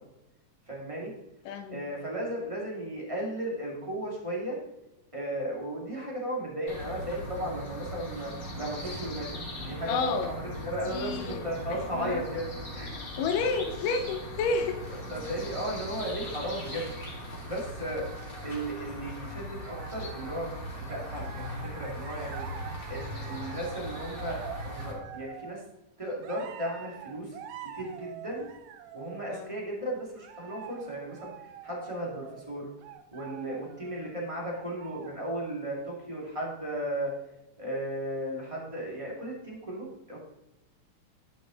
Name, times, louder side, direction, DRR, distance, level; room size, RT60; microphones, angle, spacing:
voice 1, 0.7-1.1 1.7-4.6 5.1-12.5 12.7-13.0 15.1-16.9 17.4-18.1 18.4-22.4 22.9-25.6 26.0-27.4 27.7-28.5 28.9-31.3 31.6-32.7 33.1-37.1 37.6-40.2, right 1 dB, 15° right, -3 dB, 1.5 m, -35 dB
voice 2, 1.5-1.8 9.8-10.3 10.8-11.4 11.7-12.2 13.2-14.8 29.3-29.6, left 4 dB, 85° left, 6 dB, 2.3 m, -30 dB
sound 1, 6.7-24.9, left 1 dB, 20° left, 2.0 m, -39 dB
sound 2, 17.9-19.3 19.6-20.6 20.9-25.6 26.2-29.5 30.2-34.2 34.5-35.3, right 10 dB, 80° right, 2.2 m, -46 dB
12.0 x 5.2 x 3.9 m, 0.94 s
omnidirectional pair, 3.8 m